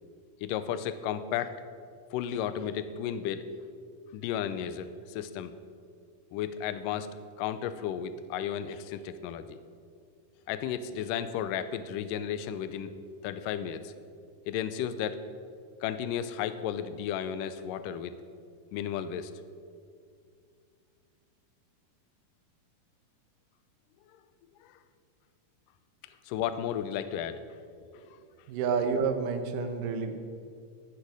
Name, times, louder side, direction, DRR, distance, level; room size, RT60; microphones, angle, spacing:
voice 1, 0.4-1.6 2.1-3.5 4.1-5.6 6.3-9.6 10.5-12.9 13.2-13.9 14.5-15.2 15.8-18.2 18.7-19.3 24.6-24.7 26.3-27.4 27.8-27.9, left 9 dB, 80° left, 12 dB, 2.1 m, -33 dB
voice 2, 28.5-30.2, right 5 dB, 70° right, 7 dB, 2.4 m, -30 dB
16.0 x 9.4 x 4.8 m, 2.2 s
omnidirectional pair, 4.2 m